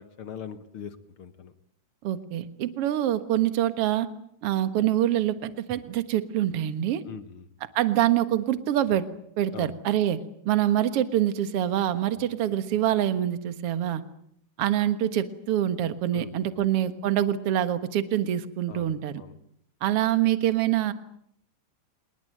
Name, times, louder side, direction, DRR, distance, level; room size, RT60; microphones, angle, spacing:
voice 1, 0.0-1.5 7.0-7.4 9.5-9.7 16.1-16.7 18.7-19.3, left 7 dB, 60° left, 11 dB, 1.4 m, -42 dB
voice 2, 2.0-4.1 4.4-7.0 7.8-9.1 9.4-14.0 14.6-19.2 19.8-20.9, right 12 dB, 55° right, 11 dB, 2.0 m, -25 dB
27.0 x 20.5 x 9.1 m, 0.71 s
omnidirectional pair, 3.9 m